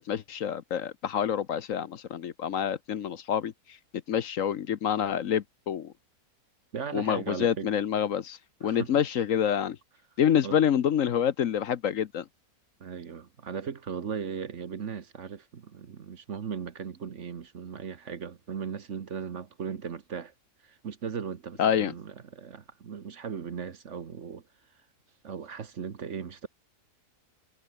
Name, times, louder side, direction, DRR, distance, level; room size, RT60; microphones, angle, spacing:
voice 1, 0.0-3.5 4.1-5.9 6.9-9.8 10.2-12.2 21.6-21.9, left 9 dB, 60° left, 1.2 m, -27 dB
voice 2, 6.7-7.7 8.6-8.9 10.4-10.6 12.8-20.3 20.6-24.4 25.2-26.5, right 6 dB, 55° right, 1.4 m, -37 dB
omnidirectional pair, 1.6 m